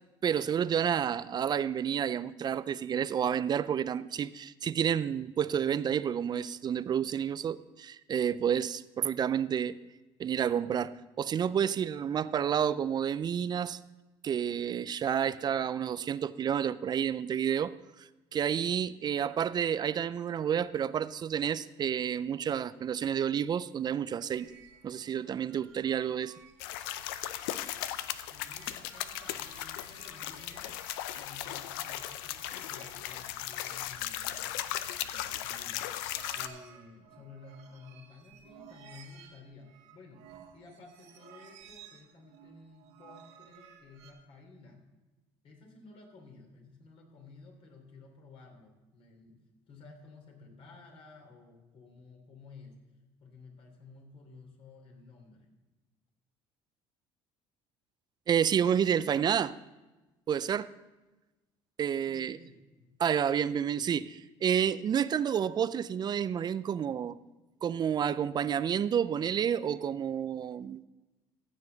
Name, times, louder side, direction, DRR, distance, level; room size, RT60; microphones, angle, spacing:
voice 1, 0.2-9.8 10.2-13.8 14.2-17.7 18.0-24.5 24.8-26.3 58.3-59.5 60.3-60.7 61.8-62.4 63.0-67.2 67.6-70.8, right 8 dB, 35° right, 0.4 m, -30 dB
sound 1, 24.3-44.1, right 7 dB, 70° right, 1.4 m, -56 dB
sound 2, 26.6-36.5, left 13 dB, 85° left, 0.5 m, -37 dB
voice 2, 28.3-30.7 31.1-40.2 40.5-44.8 45.4-49.4 49.7-52.7 53.2-55.5 62.0-62.6, left 3 dB, 55° left, 3.1 m, -54 dB
15.0 x 7.1 x 3.9 m
supercardioid pair, 85°, 12 cm